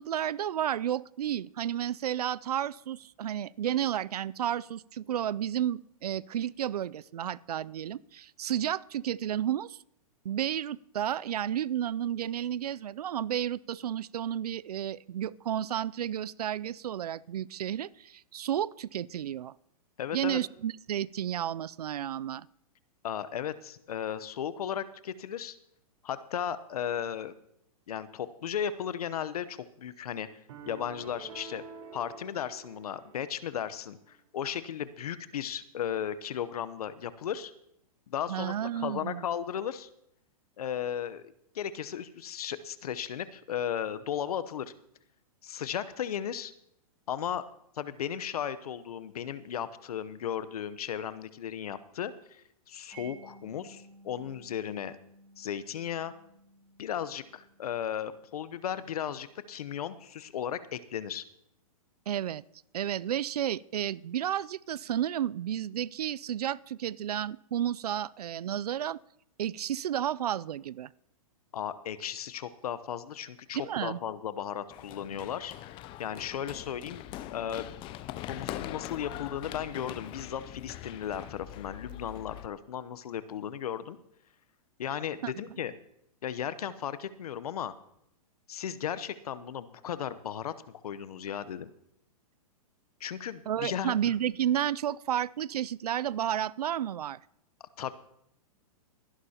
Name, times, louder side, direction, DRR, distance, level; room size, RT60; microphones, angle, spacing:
voice 1, 0.0-9.8 10.2-19.5 20.1-22.5 38.3-39.3 62.1-62.4 62.7-69.0 69.4-70.9 73.5-74.0 85.2-85.3 93.5-97.2, right 10 dB, 90° right, 23 dB, 0.4 m, -32 dB
voice 2, 20.0-20.4 23.0-25.6 26.0-27.3 27.9-30.3 30.7-31.6 31.9-37.5 38.1-39.9 40.6-44.7 45.4-46.5 47.1-47.4 47.8-55.0 55.4-56.1 56.8-61.2 71.5-75.5 76.0-77.0 77.3-77.7 78.3-84.0 84.8-85.7 86.2-87.7 88.5-90.5 90.8-91.7 93.0-94.0 97.8-97.9, left 9 dB, 75° left, 14 dB, 0.9 m, -35 dB
sound 1, 30.5-33.7, right 5 dB, 60° right, 3.9 m, -48 dB
Mallet percussion, 52.9-59.7, right 2 dB, 10° right, 6.7 m, -56 dB
Run, 74.7-82.5, left 14 dB, 25° left, 0.5 m, -42 dB
23.0 x 11.0 x 2.9 m, 0.74 s
hypercardioid pair, 135°, 19 cm